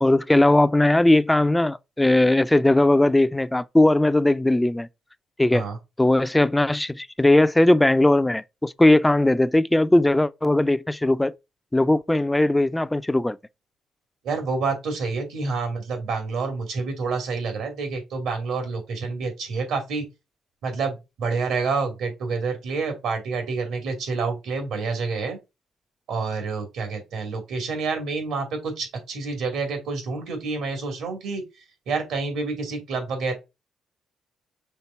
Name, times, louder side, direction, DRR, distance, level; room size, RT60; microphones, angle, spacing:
voice 1, 0.0-4.9 5.4-5.6 6.0-11.3 11.7-13.4, left 1 dB, 10° left, 0.4 m, -19 dB
voice 2, 14.2-20.0 20.6-25.4 26.1-31.4 31.9-33.3, right 4 dB, 85° right, 2.7 m, -28 dB
5.8 x 3.8 x 4.4 m
cardioid pair, 115°, 0 cm